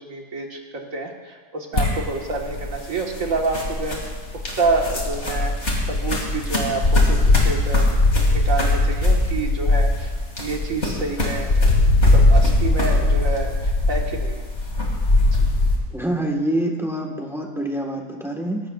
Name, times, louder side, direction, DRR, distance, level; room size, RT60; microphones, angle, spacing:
voice 1, 0.1-4.2 4.6-5.5 5.9-7.9 8.2-10.1 10.4-11.7 12.1-14.4 15.3-15.5, right 3 dB, 70° right, 0 dB, 2.0 m, -28 dB
sound 1, 1.7-15.8, left 2 dB, 55° left, 2.8 m, -20 dB
voice 2, 15.9-18.6, right 1 dB, ahead, 0 dB, 1.4 m, -26 dB
23.5 x 12.0 x 2.5 m, 1.4 s
omnidirectional pair, 1.4 m